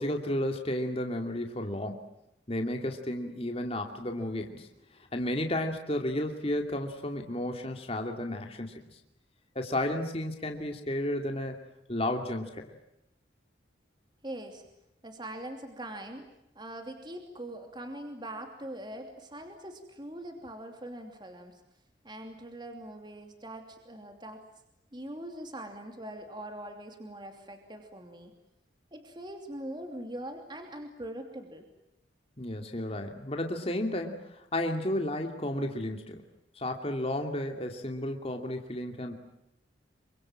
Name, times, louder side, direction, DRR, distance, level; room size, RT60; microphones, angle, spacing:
voice 1, 0.0-2.0 2.5-4.7 5.0-8.8 9.5-11.6 11.9-12.7 32.4-36.2 36.6-39.1, left 1 dB, 30° left, 4 dB, 2.6 m, -32 dB
voice 2, 14.2-14.6 15.0-16.3 16.5-21.6 22.0-24.4 24.9-28.3 28.9-31.7, right 1 dB, 25° right, 5 dB, 2.8 m, -42 dB
27.5 x 25.0 x 7.5 m, 0.83 s
head